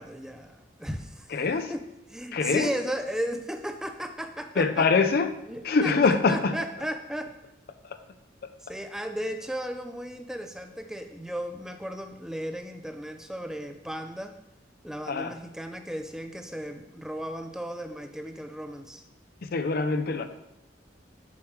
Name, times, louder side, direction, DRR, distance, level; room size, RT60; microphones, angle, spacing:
voice 1, 0.0-1.3 1.7-1.8 2.1-4.9 5.5-7.3 8.6-14.3 14.8-19.0, equal, 5° right, 6 dB, 0.4 m, -35 dB
voice 2, 1.3-1.7 2.3-2.7 4.6-5.4 5.6-6.6 7.8-7.9 15.1-15.3 19.4-20.3, left 4 dB, 55° left, 9 dB, 0.5 m, -24 dB
7.2 x 4.6 x 3.1 m, 0.88 s
head